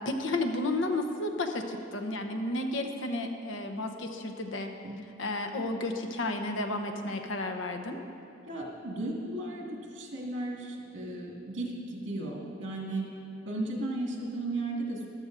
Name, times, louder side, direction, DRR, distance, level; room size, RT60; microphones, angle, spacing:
voice 1, 0.0-4.7 5.2-8.0, left 2 dB, 80° left, 4 dB, 0.9 m, -32 dB
voice 2, 8.5-13.1 13.5-15.1, right 2 dB, 75° right, -2 dB, 1.9 m, -35 dB
14.0 x 12.5 x 2.6 m, 2.6 s
head